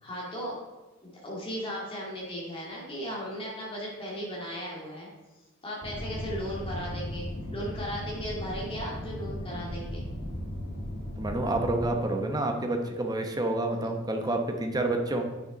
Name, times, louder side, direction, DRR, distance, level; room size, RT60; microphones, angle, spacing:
voice 1, 0.0-0.6 1.0-5.1 5.6-10.1, equal, 25° left, -4 dB, 2.1 m, -36 dB
sound 1, 5.8-11.9, equal, 55° left, 1.4 m, -36 dB
voice 2, 11.2-15.2, right 2 dB, 20° right, 4 dB, 0.9 m, -28 dB
8.9 x 6.2 x 3.9 m, 1.1 s
head